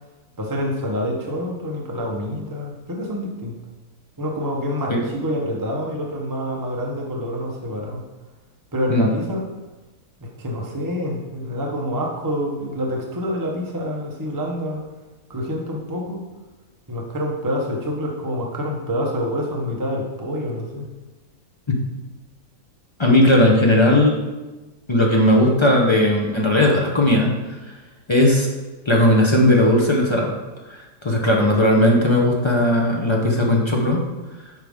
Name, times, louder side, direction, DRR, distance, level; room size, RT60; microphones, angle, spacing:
voice 1, 0.4-3.6 4.2-8.0 8.7-9.5 10.2-14.8 15.3-16.2 16.9-20.9, equal, 20° right, -1 dB, 0.6 m, -27 dB
voice 2, 23.0-24.2 24.9-27.3 28.1-28.5 28.8-30.3 30.7-34.0, left 1 dB, 25° left, -1 dB, 0.7 m, -17 dB
8.2 x 5.2 x 3.6 m, 1.2 s
omnidirectional pair, 1.7 m